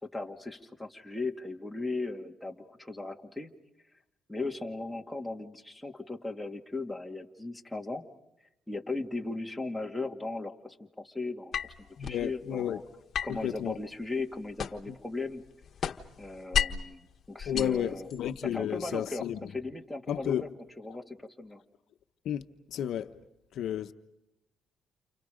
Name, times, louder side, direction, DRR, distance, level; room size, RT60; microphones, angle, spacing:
voice 1, 0.0-3.5 4.3-8.0 8.7-11.5 12.0-12.8 13.2-15.4 16.2-18.1 18.5-20.5 20.8-21.6, left 3 dB, 5° left, 2.4 m, -37 dB
sound 1, 11.5-12.3 13.1-15.0 15.3-16.9 17.4-18.5, left 8 dB, 55° left, 1.4 m, -34 dB
voice 2, 12.0-12.8 13.3-13.8 17.5-19.5 20.1-20.5 22.2-22.4 22.7-23.1 23.5-23.9, left 10 dB, 75° left, 1.0 m, -32 dB
29.5 x 29.5 x 5.2 m
cardioid pair, 90°, 0 cm